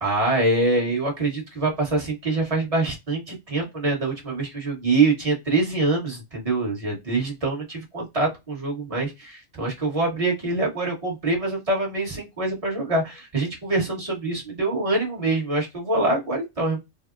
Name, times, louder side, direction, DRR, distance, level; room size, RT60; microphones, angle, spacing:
voice 1, 0.0-16.8, right 2 dB, 30° right, -1 dB, 1.0 m, -25 dB
3.5 x 2.0 x 2.4 m, 0.21 s
omnidirectional pair, 1.3 m